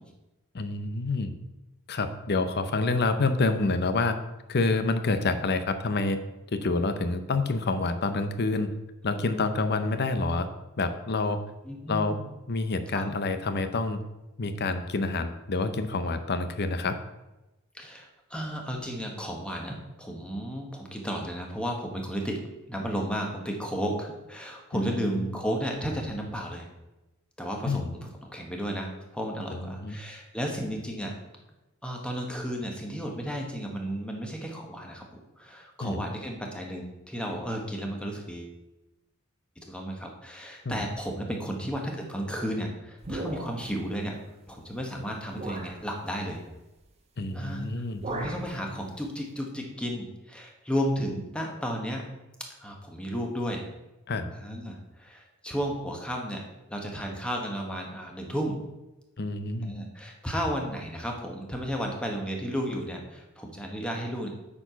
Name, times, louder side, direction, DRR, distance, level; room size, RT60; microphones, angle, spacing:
voice 1, 0.5-1.3 1.9-4.2 4.5-6.2 6.5-8.7 9.0-10.5 10.8-11.4 11.9-12.2 12.5-14.0 14.4-17.0 24.7-25.4 27.6-27.9 29.5-30.0 35.8-36.0 40.6-40.8 47.2-48.0 54.1-54.3 59.2-59.7, left 3 dB, 50° left, 10 dB, 0.7 m, -28 dB
voice 2, 11.6-12.3 12.9-13.0 17.7-22.4 22.7-26.7 27.4-31.1 31.8-35.0 35.4-38.5 39.6-44.2 44.5-46.4 47.3-52.0 52.6-53.6 54.3-56.4 56.7-58.6 59.6-64.3, equal, 5° left, 1 dB, 1.2 m, -33 dB
sound 1, 43.0-43.8 44.7-44.8 45.3-45.8 47.2-47.4 47.7-48.5, right 1 dB, 30° right, 1.2 m, -37 dB
8.6 x 4.7 x 5.7 m, 1.0 s
head